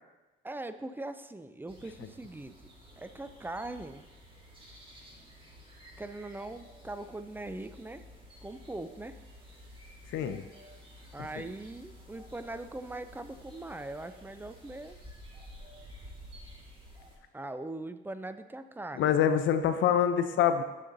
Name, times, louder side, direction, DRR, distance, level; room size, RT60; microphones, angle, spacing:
voice 1, 0.4-2.5 3.0-4.0 6.0-8.0 8.4-9.2 11.1-15.0 17.3-19.0, right 2 dB, 10° right, 10 dB, 0.4 m, -41 dB
sound 1, 1.7-17.2, equal, 25° right, 1.6 m, -52 dB
voice 2, 10.1-10.4 19.0-20.6, left 9 dB, 75° left, 9 dB, 0.5 m, -25 dB
7.4 x 6.5 x 2.6 m, 1.1 s
cardioid pair, 90°, 20 cm